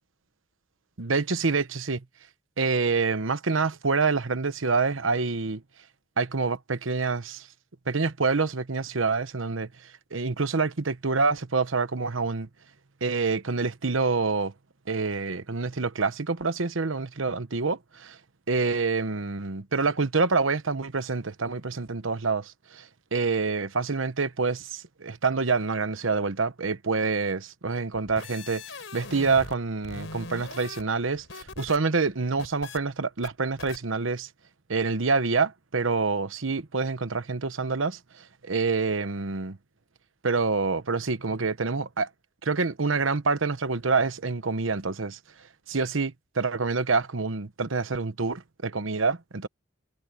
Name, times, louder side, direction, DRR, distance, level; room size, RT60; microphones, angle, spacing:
voice 1, 1.0-2.0 2.6-5.6 6.2-7.5 7.9-12.5 13.0-14.5 14.9-18.2 18.5-28.6 28.9-34.3 34.7-39.6 40.2-42.1 42.4-45.2 45.7-49.5, right 4 dB, 90° right, 1.1 m, -27 dB
sound 1, 27.9-29.6 29.8-31.8 32.1-32.8 33.2-33.3 33.6-33.8, left 3 dB, 80° left, 3.9 m, -41 dB
head